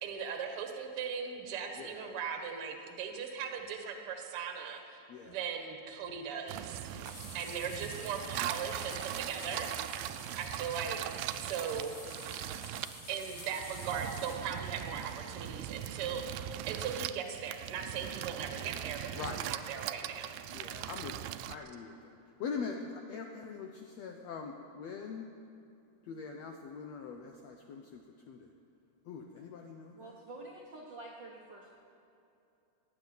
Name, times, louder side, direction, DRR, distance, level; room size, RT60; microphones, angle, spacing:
voice 1, 0.0-6.9 7.3-9.7 10.4-11.0 11.4-12.0 12.6-12.8 13.1-20.4, right 7 dB, 50° right, 4 dB, 1.8 m, -39 dB
sound 1, 6.5-21.6, right 13 dB, 85° right, 2.3 m, -41 dB
voice 2, 6.9-7.3 9.5-9.8 19.1-19.5 20.5-21.9 22.4-25.2 26.1-28.0 28.3-28.5 29.1-29.9, left 5 dB, 80° left, 3 dB, 1.5 m, -43 dB
sound 2, 7.0-14.4, left 2 dB, 40° left, 3.1 m, -49 dB
voice 3, 29.9-31.8, right 2 dB, 65° right, -2 dB, 1.1 m, -48 dB
16.0 x 9.5 x 9.4 m, 2.7 s
omnidirectional pair, 4.1 m